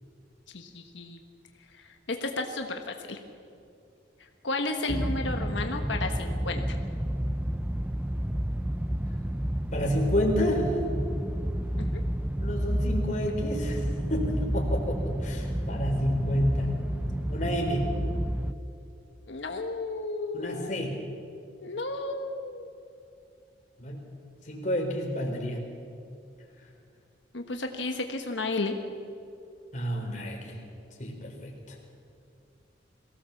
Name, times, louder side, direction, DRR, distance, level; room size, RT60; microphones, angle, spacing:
voice 1, 0.5-1.2 1.7-3.2 4.4-6.8 11.8-11.9 19.3-20.9 21.6-22.7 27.3-28.7, left 2 dB, 80° left, 4 dB, 1.4 m, -33 dB
sound 1, 4.9-18.5, equal, 10° right, 0.5 m, -30 dB
voice 2, 9.7-10.7 12.4-13.8 14.1-16.7 17.3-17.9 20.3-20.9 23.8-24.0 24.5-25.6 29.7-30.6 31.0-31.5, equal, 40° left, 0 dB, 4.1 m, -29 dB
22.5 x 16.5 x 7.2 m, 2.5 s
head